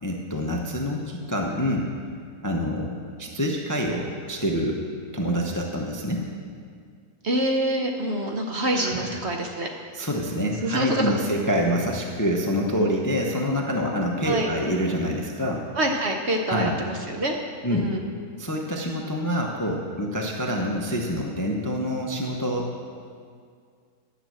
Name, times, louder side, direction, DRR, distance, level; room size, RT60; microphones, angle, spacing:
voice 1, 0.0-1.9 2.4-2.9 3.2-4.8 5.1-6.2 8.7-9.1 9.9-15.6 16.5-16.8 17.6-17.9 18.4-22.7, equal, 20° left, 0 dB, 0.6 m, -26 dB
voice 2, 7.2-9.7 10.4-11.2 14.2-14.5 15.7-17.3 17.7-18.0, right 1 dB, 50° right, 2 dB, 0.9 m, -26 dB
11.5 x 6.0 x 7.6 m, 2.1 s
omnidirectional pair, 1.7 m